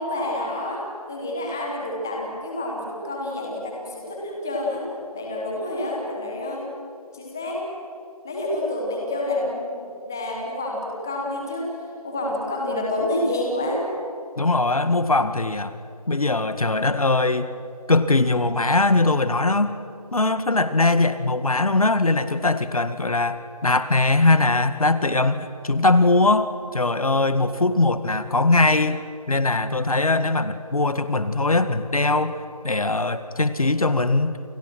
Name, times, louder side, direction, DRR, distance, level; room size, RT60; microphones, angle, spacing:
voice 1, 0.0-4.8 5.1-6.7 7.1-7.7 8.2-11.7 12.0-13.8, left 1 dB, 5° left, -2 dB, 1.1 m, -28 dB
voice 2, 14.4-15.7 16.1-17.5 17.9-19.8 20.1-29.0 29.3-32.4 32.6-34.4, left 2 dB, 65° left, 11 dB, 2.1 m, -21 dB
29.0 x 29.0 x 6.2 m, 2.5 s
figure-of-eight pair, 175°, 20 cm